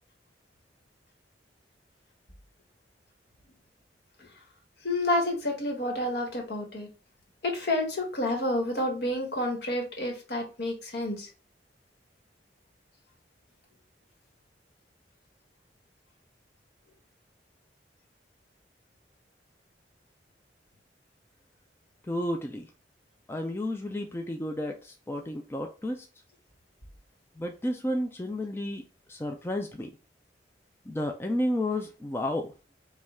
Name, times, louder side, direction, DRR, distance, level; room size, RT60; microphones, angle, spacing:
voice 1, 4.8-6.9 7.4-11.3, left 1 dB, 60° left, 1.3 m, -29 dB
voice 2, 22.1-22.7 23.3-26.1 27.4-28.8 29.1-29.9 30.9-32.5, left 1 dB, 15° left, 0.4 m, -31 dB
5.2 x 2.4 x 3.5 m
head